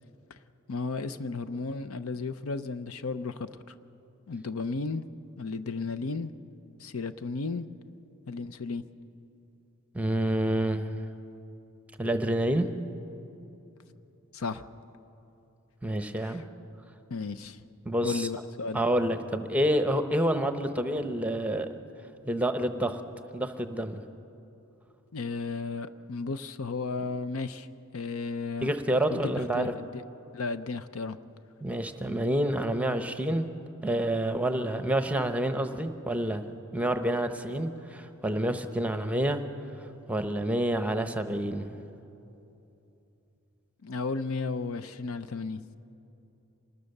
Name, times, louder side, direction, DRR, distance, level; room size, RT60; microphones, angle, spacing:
voice 1, 0.7-3.7 4.3-5.0 5.4-6.3 6.8-7.7 8.3-8.8 14.3-14.6 16.2-16.4 17.1-17.6 18.0-18.8 25.1-27.7 27.9-28.7 29.1-30.0 30.3-31.2 43.8-45.6, left 4 dB, 70° left, 12 dB, 0.7 m, -34 dB
voice 2, 9.9-11.0 12.0-12.7 15.8-16.4 17.8-18.3 18.7-21.7 22.2-23.0 23.3-24.0 28.6-29.7 31.6-33.5 33.8-39.4 39.8-41.7, right 1 dB, 5° right, 8 dB, 0.8 m, -28 dB
25.5 x 20.0 x 6.6 m, 2.9 s
head